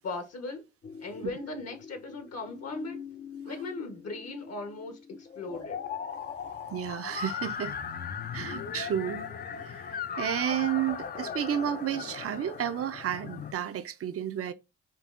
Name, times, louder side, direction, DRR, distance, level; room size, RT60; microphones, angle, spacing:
voice 1, 0.0-0.6 1.0-3.0 3.4-5.8, left 3 dB, 55° left, 1.0 m, -38 dB
sound 1, 0.8-13.5, left 7 dB, 30° left, 0.4 m, -39 dB
voice 2, 6.7-7.8 8.3-14.5, right 10 dB, 50° right, 0.5 m, -32 dB
5.2 x 2.4 x 2.4 m
cardioid pair, 90°, 30 cm